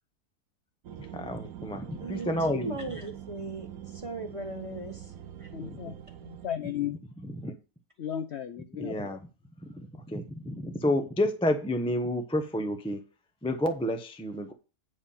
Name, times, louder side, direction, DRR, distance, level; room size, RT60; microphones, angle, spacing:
sound 1, 0.8-6.5, right 10 dB, 65° right, 1.2 m, -43 dB
voice 1, 1.0-2.8 5.6-5.9 7.4-7.5 8.8-9.2 9.6-13.0 13.4-14.5, left 1 dB, 5° left, 0.6 m, -30 dB
voice 2, 2.0-3.7 3.9-5.1 5.4-5.5, right 2 dB, 25° right, 0.9 m, -38 dB
voice 3, 5.5-7.0 8.0-9.2, left 10 dB, 65° left, 0.7 m, -35 dB
8.7 x 5.0 x 5.6 m
omnidirectional pair, 1.7 m